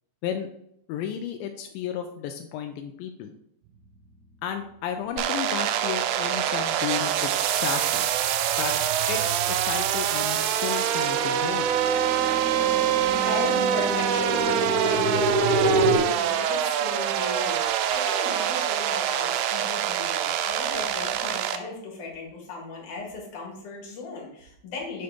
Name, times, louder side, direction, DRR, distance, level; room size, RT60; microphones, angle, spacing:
voice 1, 0.9-3.3 4.4-8.1 8.6-8.8 9.1-11.7, left 9 dB, 90° left, 5 dB, 2.3 m, -33 dB
sound 1, 5.2-21.6, right 10 dB, 85° right, 2.2 m, -25 dB
sound 2, 6.3-6.7 7.1-16.0, right 2 dB, 65° right, 1.4 m, -29 dB
voice 2, 13.1-25.0, left 3 dB, 65° left, -2 dB, 2.9 m, -36 dB
7.9 x 3.8 x 3.6 m, 0.75 s
omnidirectional pair, 4.0 m